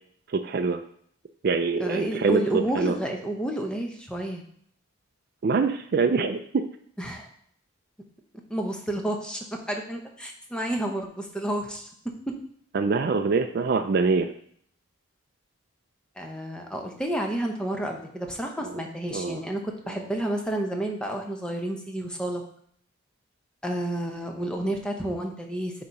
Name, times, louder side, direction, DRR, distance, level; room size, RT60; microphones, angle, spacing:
voice 1, 0.4-0.8 1.4-2.4 2.7-3.0 5.4-6.4 12.7-14.3 19.1-19.4, right 4 dB, 50° right, 6 dB, 0.4 m, -24 dB
voice 2, 1.8-4.4 7.0-7.3 8.5-11.9 16.2-22.4 23.6-25.7, right 1 dB, 5° left, 2 dB, 0.8 m, -30 dB
8.3 x 2.9 x 5.2 m, 0.64 s
head